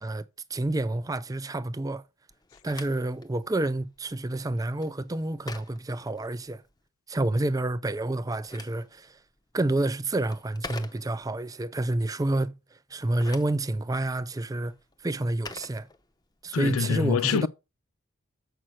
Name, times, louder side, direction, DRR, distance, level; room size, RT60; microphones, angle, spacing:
voice 1, 0.5-2.0 2.6-6.6 7.1-9.2 9.5-12.6 12.9-14.7 15.0-15.9 16.4-17.5, right 2 dB, 15° right, 0.4 m, -29 dB
Telephone, 2.3-6.8 8.1-11.5 12.9-16.5, left 3 dB, 20° left, 0.8 m, -46 dB
voice 2, 16.5-17.5, left 7 dB, 90° left, 0.4 m, -25 dB
7.6 x 5.7 x 6.2 m
head